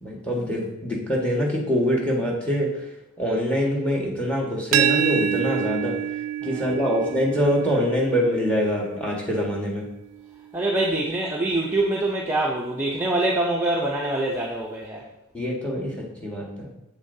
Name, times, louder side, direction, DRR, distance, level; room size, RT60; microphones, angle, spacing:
voice 1, 0.0-2.9 3.2-6.0 6.4-9.8 15.3-16.7, equal, 5° left, -2 dB, 1.5 m, -24 dB
sound 1, 4.7-10.5, right 10 dB, 85° right, 0.3 m, -28 dB
voice 2, 6.4-7.0 10.5-15.1, right 2 dB, 10° right, -3 dB, 0.6 m, -25 dB
7.8 x 6.9 x 2.7 m, 0.94 s
head